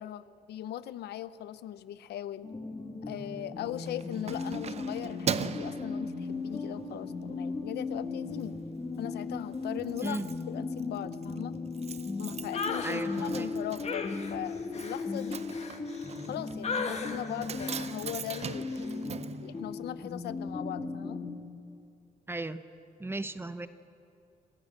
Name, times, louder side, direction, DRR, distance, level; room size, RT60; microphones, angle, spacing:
voice 1, 0.0-2.5 3.1-8.6 9.0-10.2 10.5-11.6 12.2-15.4 16.3-21.2, left 12 dB, 90° left, 15 dB, 0.7 m, -39 dB
sound 1, 2.4-21.3, left 3 dB, 25° left, 2.7 m, -37 dB
Keys jangling, 3.7-6.7 7.2-7.4 7.8-8.5 8.7-8.8 9.1-9.2 9.4-20.2 20.5-20.6, right 7 dB, 40° right, 0.6 m, -40 dB
sound 2, 12.5-13.0 13.8-16.3 16.6-17.2 17.6-17.9 18.3-18.6, left 4 dB, 40° left, 2.0 m, -36 dB
voice 2, 12.8-13.5 22.3-22.6 23.0-23.7, right 2 dB, 15° right, 12 dB, 0.8 m, -36 dB
26.5 x 15.0 x 8.8 m, 2.6 s
cardioid pair, 120°, 16 cm